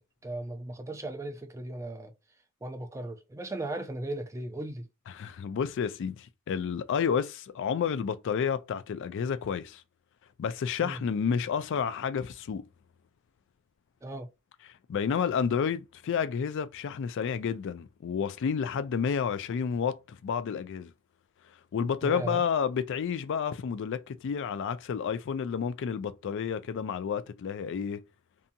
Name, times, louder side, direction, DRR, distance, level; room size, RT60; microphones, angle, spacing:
voice 1, 0.2-2.1 2.6-4.9 10.8-11.0 14.0-14.3 22.0-22.4, right 1 dB, 15° right, 0.4 m, -37 dB
voice 2, 5.1-9.8 10.4-12.6 14.9-20.9 21.7-28.0, left 7 dB, 60° left, 0.3 m, -30 dB
2.7 x 2.6 x 2.2 m
head